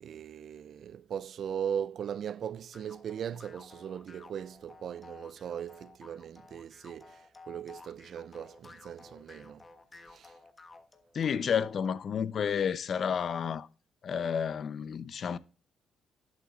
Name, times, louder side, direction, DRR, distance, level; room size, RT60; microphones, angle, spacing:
voice 1, 0.0-9.6 10.1-10.3, right 8 dB, 60° right, 0.3 m, -39 dB
sound 1, 2.7-12.0, left 3 dB, 25° left, 1.3 m, -54 dB
voice 2, 11.1-13.7 14.0-15.4, left 7 dB, 55° left, 0.6 m, -31 dB
11.0 x 8.5 x 2.4 m
cardioid pair, 90°, 0 cm